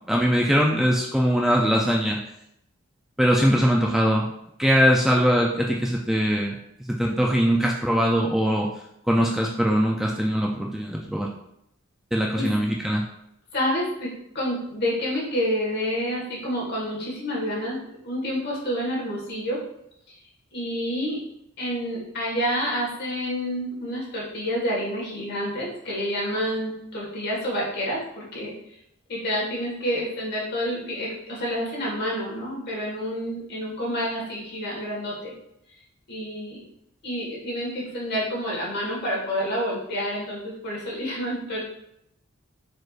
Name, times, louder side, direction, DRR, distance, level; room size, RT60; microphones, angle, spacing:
voice 1, 0.1-2.2 3.2-4.3 4.6-6.6 6.9-8.7 9.1-11.3 12.1-13.0, equal, ahead, -1 dB, 0.4 m, -21 dB
voice 2, 13.5-14.1 14.3-17.8 18.0-19.6 20.5-21.2 21.6-28.5 29.1-35.3 36.1-36.6 37.0-41.6, equal, 55° left, -4 dB, 1.7 m, -28 dB
4.5 x 4.4 x 2.5 m, 0.78 s
head